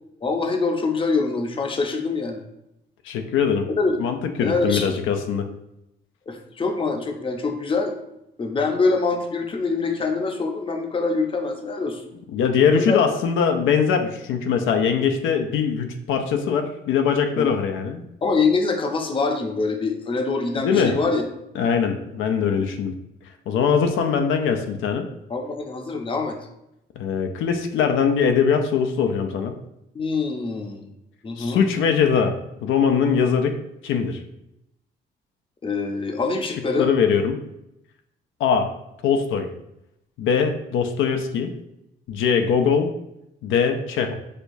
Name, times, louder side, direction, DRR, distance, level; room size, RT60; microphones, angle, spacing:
voice 1, 0.2-2.4 3.8-4.0 4.4-5.0 6.3-8.0 8.4-12.0 12.7-13.0 17.4-17.5 18.2-21.3 25.3-26.4 29.9-30.9 31.2-31.6 35.6-36.9, left 3 dB, 25° left, 4 dB, 0.6 m, -24 dB
voice 2, 3.0-3.7 4.0-5.5 12.3-18.0 20.6-21.0 21.6-22.9 23.5-25.1 27.0-29.6 31.4-32.3 32.6-33.6 33.8-34.2 36.8-37.4 38.4-38.7 39.0-39.5 40.2-41.5 42.1-42.9 43.4-44.1, left 6 dB, 80° left, 5 dB, 0.5 m, -21 dB
6.3 x 2.3 x 2.6 m, 0.84 s
cardioid pair, 90°, 20 cm